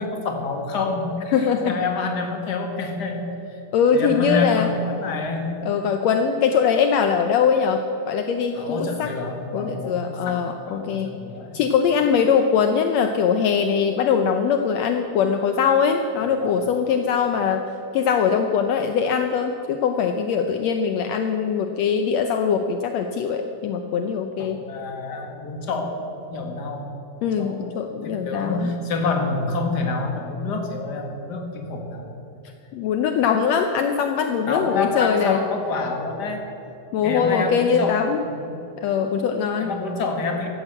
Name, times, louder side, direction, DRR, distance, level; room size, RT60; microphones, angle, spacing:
voice 1, 0.0-3.3 3.9-5.5 8.5-11.6 16.4-16.7 24.4-26.9 27.4-27.6 27.9-32.1 34.5-36.4 37.0-38.6 39.6-40.5, left 3 dB, 40° left, 3 dB, 1.8 m, -28 dB
voice 2, 1.3-1.7 3.7-4.7 5.6-9.1 9.5-11.2 11.5-17.6 17.9-24.6 27.2-28.7 32.7-35.4 36.9-38.2 38.8-39.7, left 6 dB, 80° left, 6 dB, 1.5 m, -22 dB
15.0 x 12.0 x 7.7 m, 2.9 s
omnidirectional pair, 4.0 m